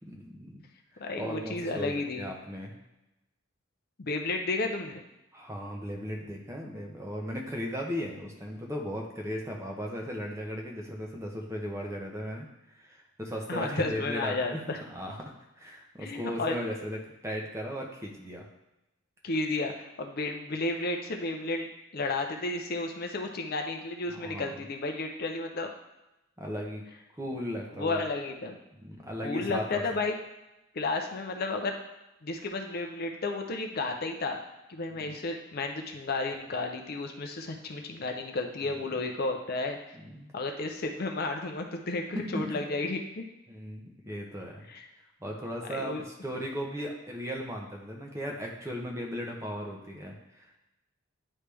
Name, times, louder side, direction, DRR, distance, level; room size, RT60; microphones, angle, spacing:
voice 1, 0.0-0.6 0.9-2.7 5.3-14.6 14.9-17.0 17.2-18.5 24.1-24.5 26.4-26.8 27.1-28.0 28.8-29.8 34.9-35.1 38.6-38.8 39.9-40.3 42.1-42.7 43.5-44.7 45.2-50.6, equal, 15° right, 0 dB, 0.7 m, -37 dB
voice 2, 1.0-2.3 4.0-5.0 13.5-14.8 16.0-16.5 19.2-21.7 21.9-25.7 27.3-27.4 27.7-28.6 29.2-30.2 30.7-31.7 32.2-34.4 34.7-39.8 40.3-43.3 44.7-44.9 45.7-46.0, left 3 dB, 45° left, 4 dB, 0.5 m, -32 dB
9.7 x 3.2 x 3.4 m, 0.94 s
head